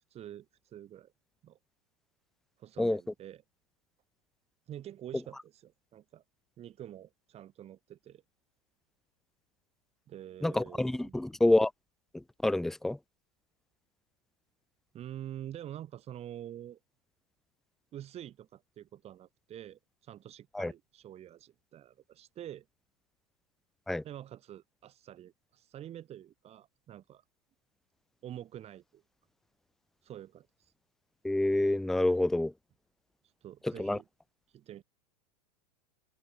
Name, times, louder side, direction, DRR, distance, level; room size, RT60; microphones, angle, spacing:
voice 1, 0.1-1.1 1.4-1.6 2.6-3.4 4.7-6.2 6.6-8.2 10.1-11.2 14.9-16.8 17.9-22.6 24.0-27.2 28.2-29.0 30.0-30.7 33.2-34.1 34.5-34.8, right 11 dB, 30° right, 5.5 m, -47 dB
voice 2, 10.4-11.7 12.4-13.0 20.6-20.7 23.9-24.0 31.2-32.5 33.8-34.0, left 1 dB, ahead, 0.5 m, -27 dB
figure-of-eight pair, 90°, 20 cm